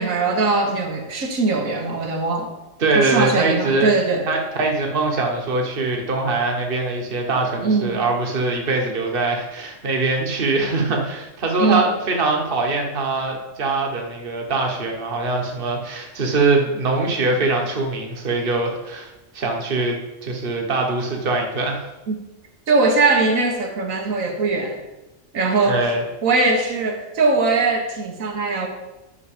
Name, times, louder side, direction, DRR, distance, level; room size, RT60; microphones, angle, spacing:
voice 1, 0.0-2.5 2.9-4.3 7.6-8.0 11.6-11.9 22.1-22.2 22.7-24.8 25.3-25.8 26.2-28.7, right 3 dB, 80° right, 3 dB, 1.7 m, -20 dB
voice 2, 2.8-3.9 4.3-21.9 25.6-26.0, right 3 dB, 45° right, 1 dB, 1.4 m, -22 dB
10.0 x 6.3 x 5.0 m, 1.0 s
omnidirectional pair, 1.4 m